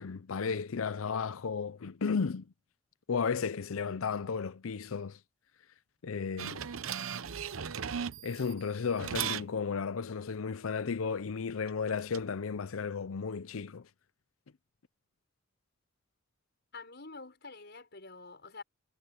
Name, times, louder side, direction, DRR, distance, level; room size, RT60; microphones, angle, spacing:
voice 1, 0.0-2.4 3.1-5.2 6.0-6.6 8.2-13.9, left 5 dB, 85° left, 0.6 m, -34 dB
sound 1, 6.4-8.5 9.0-9.5 11.7-12.2, right 8 dB, 85° right, 0.8 m, -37 dB
voice 2, 16.7-18.6, left 3 dB, 55° left, 6.3 m, -47 dB
head